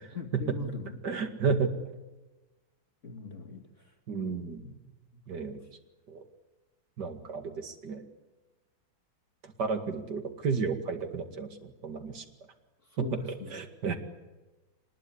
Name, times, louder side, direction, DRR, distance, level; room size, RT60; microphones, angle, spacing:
voice 1, 0.1-1.0 3.0-3.6 4.6-4.8 13.0-13.6, left 2 dB, 35° left, 3 dB, 2.4 m, -39 dB
voice 2, 1.0-1.7 4.1-4.6 5.3-5.6 6.1-6.2 7.0-8.0 9.6-12.2 13.0-14.0, right 5 dB, 55° right, 7 dB, 2.7 m, -32 dB
24.5 x 20.5 x 9.9 m, 1.1 s
omnidirectional pair, 2.2 m